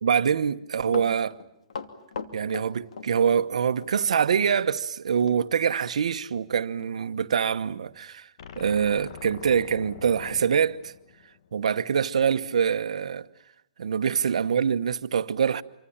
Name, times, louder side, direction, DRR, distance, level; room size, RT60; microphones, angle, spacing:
voice 1, 0.0-1.4 2.3-8.3 8.6-10.9 11.5-13.3 13.8-15.6, right 7 dB, 80° right, 1.2 m, -25 dB
Run, 0.6-3.5 3.8-4.0 5.2-5.4 5.8-5.9 6.4-6.5 6.8-7.0 7.5-7.6, left 5 dB, 85° left, 2.7 m, -38 dB
sound 1, 8.4-11.7, left 7 dB, 60° left, 1.4 m, -44 dB
27.5 x 24.5 x 8.8 m
hypercardioid pair, 155°, 3 cm